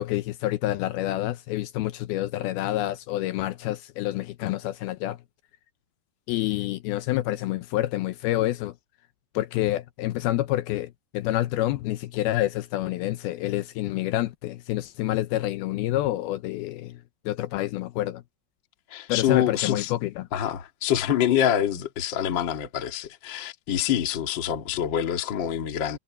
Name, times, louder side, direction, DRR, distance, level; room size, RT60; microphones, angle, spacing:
voice 1, 0.0-5.2 6.3-8.8 9.3-18.2 19.1-20.3, left 15 dB, 80° left, 2.5 m, -28 dB
voice 2, 18.9-19.9 20.3-26.0, left 10 dB, 45° left, 1.6 m, -26 dB
omnidirectional pair, 4.6 m